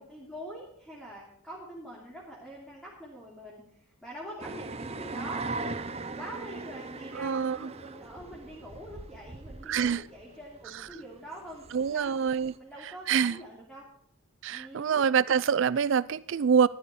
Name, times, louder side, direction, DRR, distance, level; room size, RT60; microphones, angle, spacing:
voice 1, 0.0-12.2 12.5-13.8 14.5-15.1, equal, ahead, -5 dB, 2.9 m, -45 dB
Two electric trains departing, 4.4-12.5, right 3 dB, 30° right, 0.7 m, -40 dB
voice 2, 7.1-7.6 9.7-10.0 11.7-12.5 12.8-13.4 14.4-16.7, right 7 dB, 60° right, 17 dB, 0.4 m, -26 dB
14.5 x 11.0 x 4.2 m, 0.66 s
head